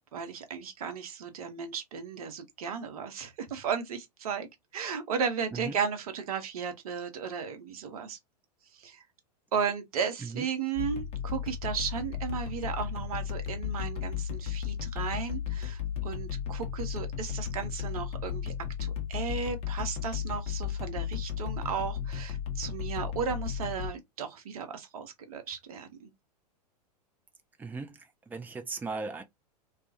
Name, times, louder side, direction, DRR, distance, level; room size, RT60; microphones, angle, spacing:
voice 1, 0.1-4.5 4.7-8.2 8.7-9.0 9.5-18.5 18.8-26.1, right 6 dB, 60° right, 0.8 m, -35 dB
sound 1, 10.8-23.9, left 9 dB, 30° left, 0.8 m, -34 dB
voice 2, 27.6-28.0 28.3-29.2, right 4 dB, 10° right, 0.5 m, -37 dB
2.4 x 2.3 x 2.6 m
figure-of-eight pair, 95°, 21 cm